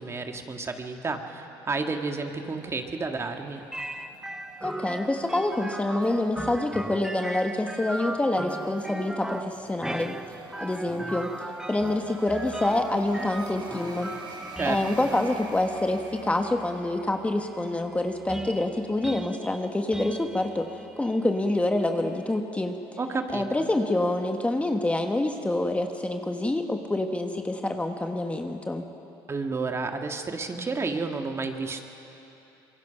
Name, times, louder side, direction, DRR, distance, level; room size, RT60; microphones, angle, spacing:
voice 1, 0.0-3.6 14.6-15.1 23.0-23.4 29.3-31.8, right 3 dB, 30° right, 4 dB, 1.8 m, -31 dB
sound 1, 2.5-17.1, right 4 dB, 50° right, 3.0 m, -46 dB
sound 2, 3.7-22.4, right 1 dB, 5° right, 0.9 m, -39 dB
voice 2, 4.6-10.1 10.6-11.3 11.7-14.1 14.6-22.8 23.3-28.9, left 2 dB, 15° left, 5 dB, 1.3 m, -27 dB
25.5 x 22.5 x 5.9 m, 3.0 s
supercardioid pair, 95°, 10 cm